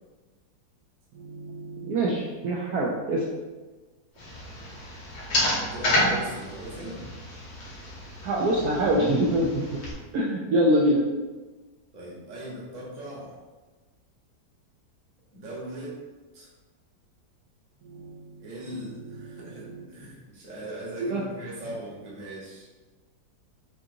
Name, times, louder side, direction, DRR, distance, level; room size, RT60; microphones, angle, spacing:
voice 1, 1.1-3.2 8.2-9.8 10.1-11.0 17.8-18.5 19.1-19.4 19.7-19.8 21.0-21.2, right 1 dB, 70° right, -4 dB, 1.0 m, -25 dB
sound 1, 4.2-9.9, left 1 dB, 70° left, 1.8 m, -30 dB
voice 2, 5.4-7.0 11.9-13.3 15.3-16.0 16.3-16.5 18.4-22.7, right 1 dB, 30° right, -5 dB, 0.9 m, -39 dB
6.1 x 2.9 x 2.7 m, 1.3 s
omnidirectional pair, 2.0 m